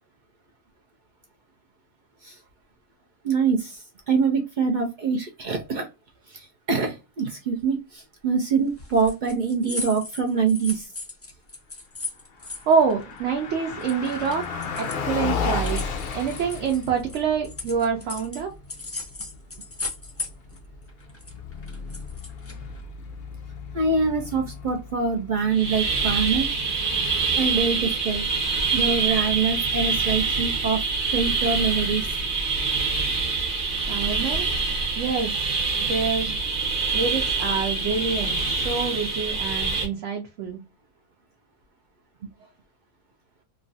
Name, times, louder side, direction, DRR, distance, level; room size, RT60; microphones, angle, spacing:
voice 1, 3.2-5.9 6.3-10.9 23.7-26.5 27.4-28.3 28.7-30.8 31.1-32.1, right 5 dB, 85° right, 0.4 m, -24 dB
sound 1, 8.8-13.5 13.8-18.4 18.7-20.6 20.9-22.8, left 3 dB, 15° left, 0.4 m, -37 dB
Car passing by, 12.4-28.5, left 4 dB, 85° left, 0.4 m, -35 dB
voice 2, 12.7-18.5 33.9-34.5 34.9-35.5 35.9-36.4 36.9-40.6, right 6 dB, 65° right, 0.9 m, -26 dB
sound 2, 25.5-39.9, right 4 dB, 40° right, 1.0 m, -25 dB
3.0 x 2.4 x 2.5 m
omnidirectional pair, 1.5 m